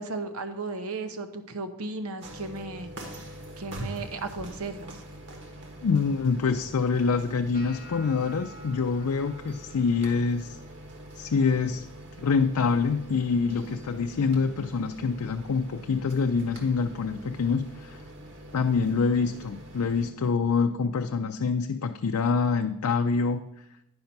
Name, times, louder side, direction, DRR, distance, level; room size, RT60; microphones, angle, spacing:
voice 1, 0.0-3.1 3.6-5.0, right 3 dB, 75° right, 8 dB, 0.9 m, -35 dB
sound 1, 2.2-20.1, right 1 dB, 55° right, 1.4 m, -44 dB
voice 2, 5.8-10.6 11.2-11.9 12.2-18.0 18.5-23.5, left 5 dB, 85° left, 6 dB, 0.4 m, -26 dB
sound 2, 7.5-13.6 13.9-14.4 14.8-15.3 15.9-16.1 17.9-18.0, equal, 40° left, 1.0 m, -53 dB
9.7 x 5.3 x 5.8 m, 0.82 s
head